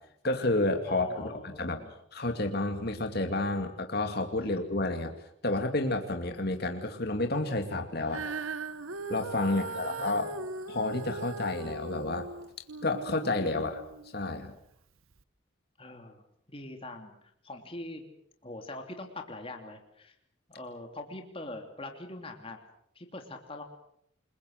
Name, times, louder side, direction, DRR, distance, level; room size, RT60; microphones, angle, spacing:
voice 1, 0.2-1.8 2.1-5.1 5.4-8.3 9.1-10.3 10.7-12.2 12.8-13.8 14.1-14.5, left 2 dB, 50° left, 5 dB, 2.4 m, -30 dB
voice 2, 0.9-1.9 4.4-4.5 9.4-10.5 15.8-18.0 18.4-20.1 20.5-22.6 22.9-23.6, left 2 dB, 25° left, 4 dB, 2.9 m, -43 dB
Female singing, 8.1-14.4 15.1-15.2, right 3 dB, 85° right, 1.5 m, -39 dB
28.5 x 22.0 x 6.5 m, 0.73 s
head